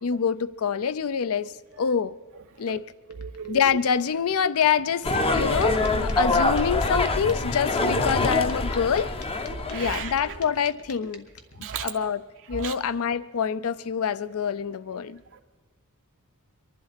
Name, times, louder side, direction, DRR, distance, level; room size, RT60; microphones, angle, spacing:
voice 1, 0.0-2.1 2.6-2.9 3.5-9.1 9.7-11.3 11.8-12.2 12.5-15.2, left 7 dB, 70° left, 0.5 m, -26 dB
sound 1, 3.1-11.6, left 3 dB, 90° left, 1.3 m, -39 dB
voice 2, 3.2-3.6 5.4-5.6 9.7-10.1 11.6-12.1 12.5-12.7, right 7 dB, 60° right, 0.5 m, -34 dB
sound 2, 5.0-10.4, left 2 dB, 25° left, 0.6 m, -25 dB
23.5 x 11.5 x 4.1 m
head